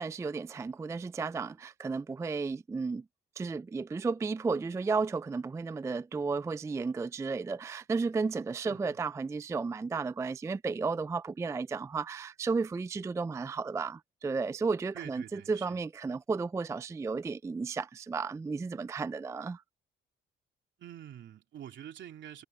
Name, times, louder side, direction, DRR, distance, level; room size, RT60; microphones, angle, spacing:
voice 1, 0.0-3.0 3.4-19.6, right 4 dB, 15° right, 0.3 m, -33 dB
voice 2, 8.6-9.0 14.9-15.8 20.8-22.4, right 10 dB, 70° right, 3.0 m, -46 dB
cardioid pair, 90°, 20 cm